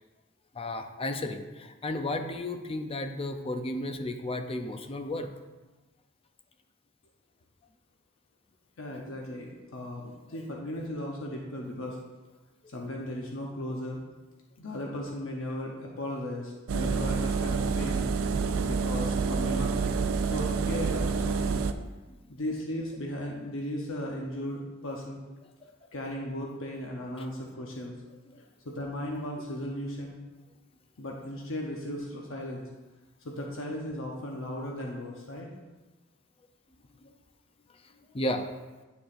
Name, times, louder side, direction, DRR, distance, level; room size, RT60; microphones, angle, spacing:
voice 1, 0.5-5.3 27.2-27.3 28.3-28.4 37.0-37.1 38.1-38.5, left 1 dB, 30° left, 7 dB, 0.5 m, -33 dB
voice 2, 8.8-12.0 12.7-14.0 14.6-18.0 18.6-19.8 20.3-21.4 22.3-25.2 25.9-28.0 28.6-30.2 31.0-32.6 33.2-35.5, left 1 dB, 70° left, -1 dB, 0.8 m, -36 dB
Engine, 16.7-21.7, right 5 dB, 85° right, 0.4 m, -28 dB
9.2 x 6.8 x 2.5 m, 1.2 s
head